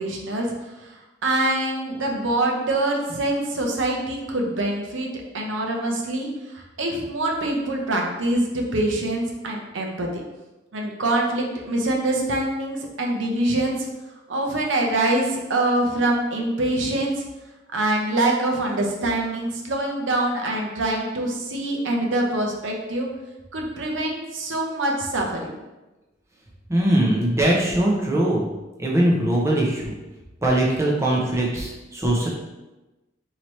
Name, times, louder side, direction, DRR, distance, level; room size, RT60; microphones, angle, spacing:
voice 1, 0.0-5.1 5.3-10.1 10.7-13.9 14.3-17.3 17.7-23.1 23.5-25.6, right 1 dB, 80° right, 0 dB, 0.7 m, -24 dB
voice 2, 26.7-28.5 28.8-29.9 30.4-32.3, right 1 dB, 15° right, -3 dB, 0.6 m, -21 dB
4.5 x 2.8 x 3.1 m, 1.1 s
head